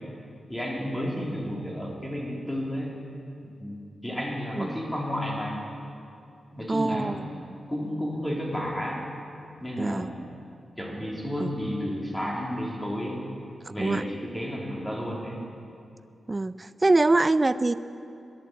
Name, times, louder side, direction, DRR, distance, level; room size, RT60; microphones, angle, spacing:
voice 1, 0.5-3.0 3.4-5.6 6.5-7.4 7.7-9.0 9.6-10.3 10.8-13.3 13.7-15.4, equal, 10° left, -3 dB, 3.0 m, -32 dB
voice 2, 6.7-7.3 9.8-10.1 11.4-11.5 13.6-14.0 16.3-17.7, right 2 dB, 25° right, 14 dB, 0.4 m, -24 dB
11.5 x 10.5 x 7.6 m, 2.7 s
cardioid pair, 85°, 0 cm